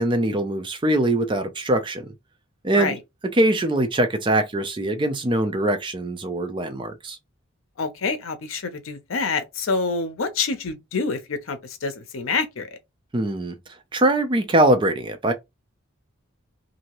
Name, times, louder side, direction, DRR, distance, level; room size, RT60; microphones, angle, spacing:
voice 1, 0.0-2.1 2.6-3.0 3.3-7.2 13.1-13.6 13.9-15.3, right 1 dB, 25° right, 0.5 m, -22 dB
voice 2, 7.8-12.8, left 4 dB, 75° left, 0.6 m, -27 dB
2.7 x 2.6 x 3.0 m
head